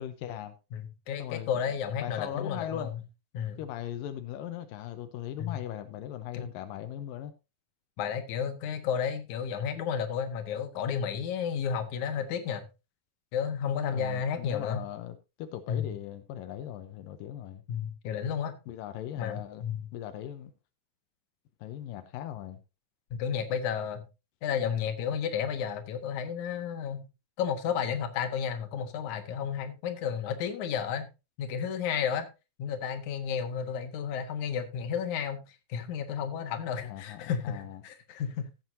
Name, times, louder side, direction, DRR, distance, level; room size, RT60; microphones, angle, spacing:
voice 1, 0.0-0.5 1.2-1.5 2.0-2.9 3.6-7.3 13.9-17.6 18.7-19.6 19.9-20.5 21.6-22.6 36.8-37.8, left 11 dB, 85° left, 2.4 m, -39 dB
voice 2, 0.7-3.0 3.3-3.6 5.4-5.6 6.3-6.5 8.0-12.7 13.3-14.9 15.7-15.9 17.7-18.6 19.2-19.9 23.1-24.0 24.4-27.1 27.4-31.1 31.4-32.3 32.6-38.5, left 7 dB, 65° left, 2.7 m, -32 dB
16.0 x 7.9 x 2.7 m
omnidirectional pair, 3.9 m